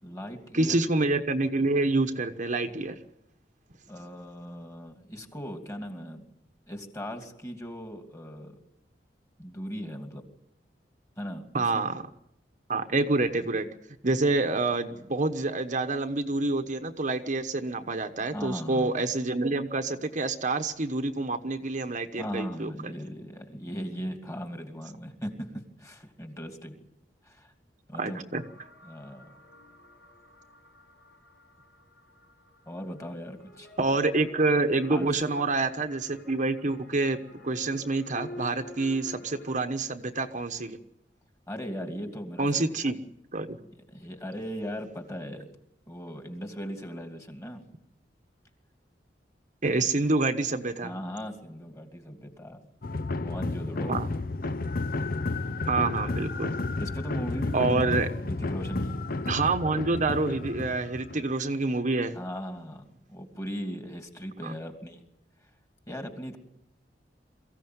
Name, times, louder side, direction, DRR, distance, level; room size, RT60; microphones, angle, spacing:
voice 1, 0.0-0.8 3.9-6.3 6.7-8.6 9.4-10.3 11.2-11.8 18.3-19.0 22.2-26.8 27.2-27.5 27.9-28.2 28.8-29.4 32.7-33.7 34.9-35.2 41.5-42.7 43.7-45.5 45.9-47.6 50.8-52.6 53.2-54.0 56.8-59.4 62.1-65.0 65.9-66.4, equal, 20° left, 5 dB, 2.7 m, -38 dB
voice 2, 0.5-3.0 11.5-12.1 12.7-13.7 14.0-22.9 28.0-28.4 33.8-40.8 42.4-42.9 43.3-43.6 49.6-50.9 53.9-54.1 55.7-56.5 57.5-58.1 59.3-62.2 64.4-64.5, right 3 dB, 45° right, 7 dB, 1.1 m, -27 dB
sound 1, 28.4-39.7, left 1 dB, 75° left, 6.5 m, -49 dB
sound 2, 52.8-61.3, left 3 dB, 55° left, 0.8 m, -32 dB
23.0 x 15.5 x 9.5 m, 0.81 s
head